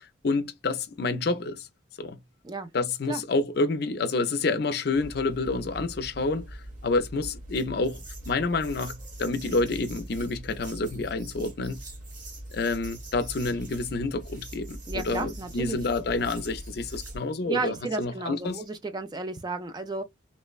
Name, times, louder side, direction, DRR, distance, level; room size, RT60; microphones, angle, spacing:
voice 1, 0.0-1.7 2.0-2.2 2.7-6.5 6.8-11.8 12.5-18.6, left 3 dB, 55° left, 0.5 m, -28 dB
sound 1, 4.9-17.2, right 1 dB, 40° right, 1.1 m, -42 dB
voice 2, 14.9-15.8 17.4-20.0, right 3 dB, 20° right, 0.3 m, -33 dB
3.1 x 2.1 x 2.3 m
head